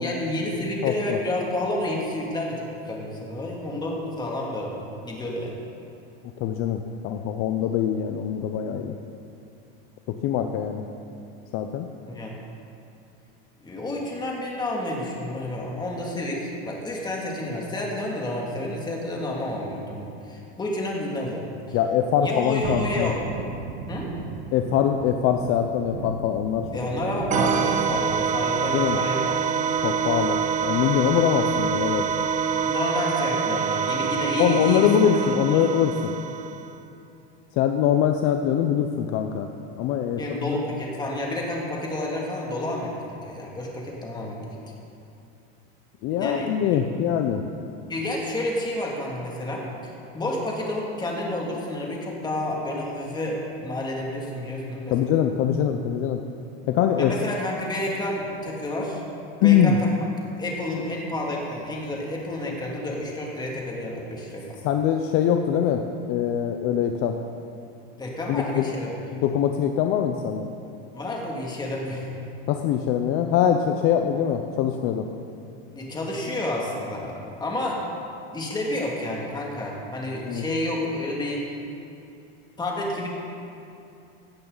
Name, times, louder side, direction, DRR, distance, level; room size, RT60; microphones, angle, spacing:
voice 1, 0.0-5.6 12.1-12.4 13.6-21.8 22.2-23.2 23.9-24.1 26.7-29.5 32.7-35.1 35.5-35.6 40.2-44.6 46.2-46.5 47.9-55.1 57.0-59.0 59.4-59.8 60.4-64.6 68.0-68.9 70.9-72.2 75.7-77.8 78.3-81.4 82.6-83.1, left 1 dB, 15° left, -2 dB, 2.4 m, -30 dB
voice 2, 0.8-1.2 6.4-9.0 10.2-10.8 11.5-11.9 21.7-23.1 24.5-26.7 28.7-29.0 29.8-32.0 34.4-36.1 37.6-39.5 39.8-40.6 46.0-47.4 54.9-56.2 56.7-57.1 59.4-59.8 64.6-67.1 68.3-68.7 69.2-70.5 72.5-75.1 80.3-80.4, left 9 dB, 45° left, 5 dB, 0.7 m, -23 dB
Thunderstorm, 22.6-32.9 33.2-33.3, right 6 dB, 65° right, 1.0 m, -39 dB
sound 1, 27.3-36.7, right 7 dB, 25° right, 0.6 m, -25 dB
17.0 x 11.5 x 4.0 m, 2.6 s
supercardioid pair, 140°, 30 cm